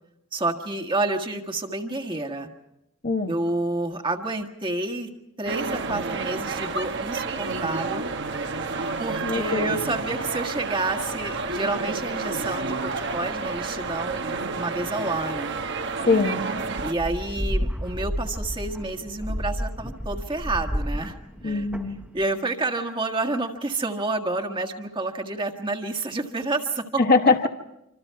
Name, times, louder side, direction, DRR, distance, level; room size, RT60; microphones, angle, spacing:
voice 1, 0.3-2.5 3.3-5.1 5.4-8.1 9.0-14.2 14.5-15.6 16.8-21.1 21.4-21.7 22.1-27.0, right 2 dB, 20° right, 4 dB, 1.6 m, -29 dB
voice 2, 3.0-3.3 9.2-9.7 16.1-16.4 21.4-22.0 27.0-27.5, left 4 dB, 40° left, 5 dB, 1.2 m, -22 dB
sound 1, 5.5-16.9, right 3 dB, 55° right, 1.3 m, -30 dB
sound 2, 16.8-22.2, equal, 5° right, 1.0 m, -31 dB
26.5 x 26.0 x 4.7 m, 0.85 s
head